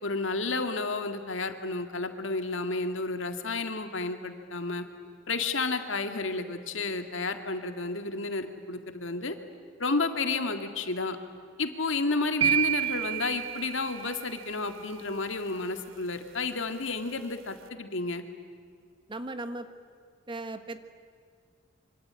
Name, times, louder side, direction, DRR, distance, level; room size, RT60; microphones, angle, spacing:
voice 1, 0.0-4.8 5.3-9.4 9.8-11.2 11.6-18.2, left 3 dB, 70° left, 7 dB, 2.1 m, -31 dB
sound 1, 12.4-14.5, right 10 dB, 75° right, 0.8 m, -29 dB
voice 2, 19.1-19.7 20.3-20.8, right 2 dB, 25° right, 9 dB, 1.4 m, -37 dB
26.0 x 25.5 x 8.9 m, 2.1 s
head